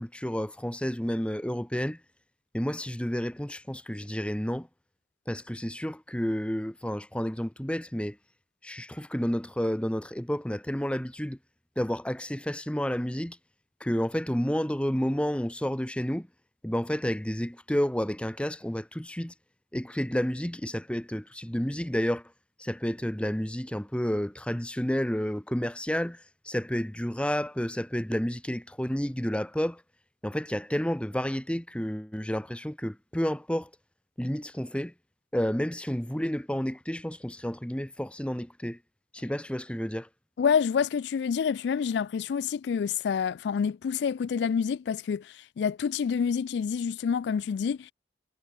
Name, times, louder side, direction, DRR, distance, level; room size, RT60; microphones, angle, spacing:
voice 1, 0.0-2.0 2.5-4.7 5.3-8.2 8.6-11.4 11.8-13.4 13.8-16.3 16.6-19.3 19.7-22.2 22.6-29.8 30.2-33.7 34.2-34.9 35.3-38.8 39.1-40.1, equal, 5° left, 1.0 m, -30 dB
voice 2, 40.4-47.9, left 6 dB, 70° left, 0.3 m, -28 dB
head